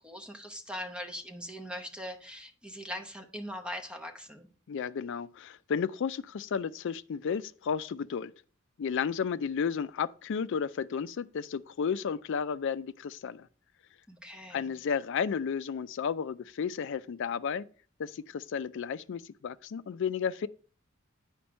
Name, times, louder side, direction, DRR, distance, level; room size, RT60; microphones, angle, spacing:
voice 1, 0.0-4.5 14.1-14.7, equal, 5° right, 0.9 m, -41 dB
voice 2, 4.7-8.3 8.8-13.5 14.5-17.7 18.0-20.5, left 6 dB, 65° left, 0.4 m, -33 dB
8.6 x 5.2 x 4.4 m
head